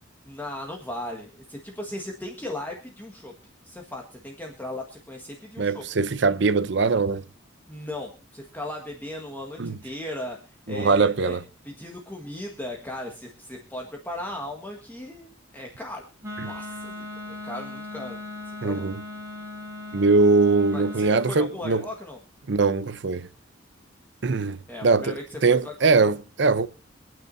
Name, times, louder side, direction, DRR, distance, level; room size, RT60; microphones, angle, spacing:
voice 1, 0.2-3.3 3.6-5.8 7.7-11.4 11.6-16.0 16.4-18.2 18.6-18.9 20.7-22.2 24.7-25.9, left 1 dB, 10° left, 1.6 m, -37 dB
voice 2, 5.6-7.3 9.6-9.8 10.7-11.4 18.6-19.0 19.9-21.8 22.5-23.3 24.2-25.1 25.4-26.7, right 4 dB, 65° right, 0.6 m, -21 dB
Wind instrument woodwind instrument, 16.2-21.4, left 2 dB, 15° right, 3.5 m, -38 dB
25.0 x 9.2 x 2.7 m
head